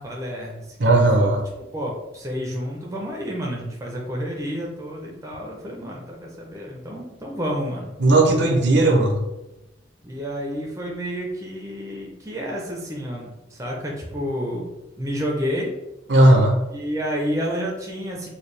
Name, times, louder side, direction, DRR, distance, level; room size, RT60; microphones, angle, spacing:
voice 1, 0.0-1.3 1.7-7.9 8.4-8.6 10.0-14.7 15.0-15.7 16.7-18.3, equal, 15° right, -2 dB, 0.5 m, -30 dB
voice 2, 0.8-1.4 8.0-9.2 16.1-16.6, right 2 dB, 65° right, 2 dB, 0.6 m, -16 dB
4.3 x 2.2 x 3.2 m, 1.0 s
head